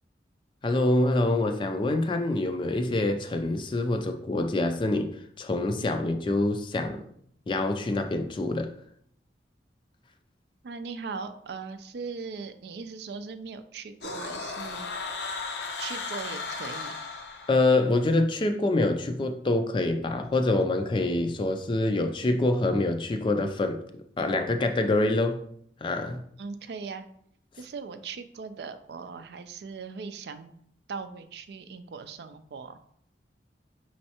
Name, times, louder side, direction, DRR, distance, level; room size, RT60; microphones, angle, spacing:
voice 1, 0.6-5.1 5.4-7.1 7.5-8.7 17.5-23.8 24.2-25.4 25.8-26.2, left 2 dB, 30° left, 0.4 m, -25 dB
voice 2, 10.6-14.9 15.8-17.1 26.4-27.1 27.6-30.5 30.9-32.8, right 5 dB, 70° right, 0.4 m, -39 dB
sound 1, 14.0-18.0, left 4 dB, 75° left, 0.6 m, -36 dB
5.4 x 3.1 x 2.9 m
head